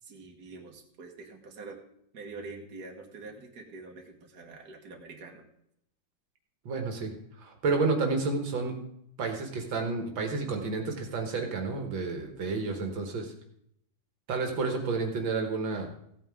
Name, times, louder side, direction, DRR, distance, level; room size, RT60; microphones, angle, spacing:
voice 1, 0.0-1.8 2.1-5.4, right 3 dB, 55° right, 1 dB, 2.0 m, -45 dB
voice 2, 6.7-7.1 7.4-8.7 9.2-13.3 14.3-15.9, right 4 dB, 75° right, 3 dB, 2.2 m, -30 dB
15.5 x 9.0 x 3.7 m, 0.74 s
omnidirectional pair, 2.1 m